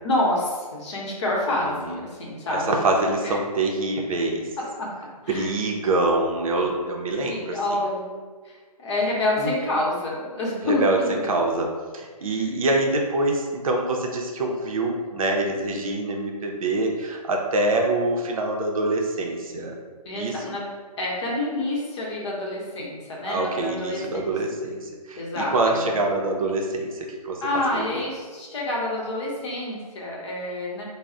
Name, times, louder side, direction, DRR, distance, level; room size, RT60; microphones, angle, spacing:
voice 1, 0.0-2.8 3.2-3.3 4.6-4.9 5.2-5.5 7.3-8.2 8.4-11.4 12.2-12.5 20.0-20.7 21.0-24.3 25.2-25.9 27.4-30.9, left 2 dB, 45° left, -4 dB, 0.8 m, -28 dB
voice 2, 1.5-2.0 2.5-4.4 5.3-7.6 9.4-9.5 10.7-19.7 20.2-20.5 23.3-24.8 25.1-27.4 27.7-27.8, right 2 dB, 60° right, 1 dB, 0.5 m, -25 dB
2.2 x 2.0 x 3.7 m, 1.5 s
hypercardioid pair, 150°, 20 cm